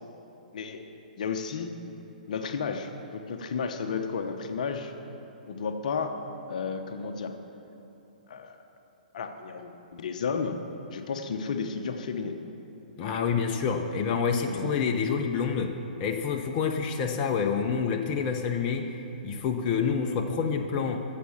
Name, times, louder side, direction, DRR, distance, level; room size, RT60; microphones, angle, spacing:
voice 1, 0.5-0.8 1.2-1.7 2.3-4.9 5.5-6.2 6.5-7.3 8.3-8.6 9.1-10.5 10.9-12.4 14.1-14.8, left 5 dB, 60° left, 6 dB, 1.0 m, -33 dB
voice 2, 13.0-15.7 16.0-18.9 19.2-21.0, left 6 dB, 35° left, 3 dB, 0.9 m, -27 dB
14.0 x 7.6 x 7.2 m, 3.0 s
figure-of-eight pair, 125°, 5 cm